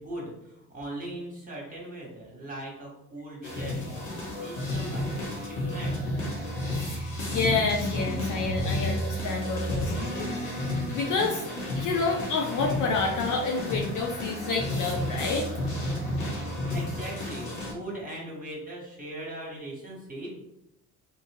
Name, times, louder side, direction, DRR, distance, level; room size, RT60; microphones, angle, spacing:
voice 1, 0.0-6.0 16.7-20.3, right 1 dB, 20° right, -3 dB, 1.3 m, -40 dB
sound 1, 3.4-17.7, left 1 dB, 80° left, 0.9 m, -31 dB
voice 2, 6.8-11.5 11.8-15.5, left 4 dB, 45° left, 1 dB, 0.5 m, -29 dB
2.8 x 2.4 x 2.6 m, 0.84 s
figure-of-eight pair, 50°, 46 cm